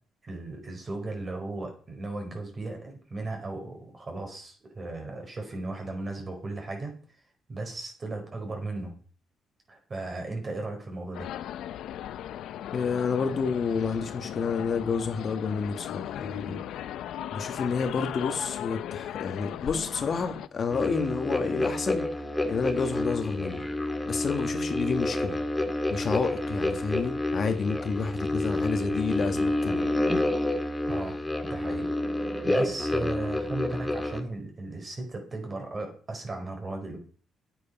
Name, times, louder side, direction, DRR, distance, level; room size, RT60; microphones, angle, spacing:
voice 1, 0.2-6.9 7.5-8.9 9.7-11.3 30.9-31.9 32.4-37.0, right 2 dB, 35° right, 4.7 m, -36 dB
sound 1, 11.1-20.5, left 11 dB, 80° left, 0.6 m, -37 dB
voice 2, 12.7-16.6 17.3-22.1 22.4-23.6 24.1-25.4 25.9-29.9, left 5 dB, 50° left, 1.9 m, -29 dB
sound 2, 20.7-34.2, left 1 dB, 10° left, 1.8 m, -29 dB
9.9 x 9.0 x 5.6 m
cardioid pair, 90°, 0 cm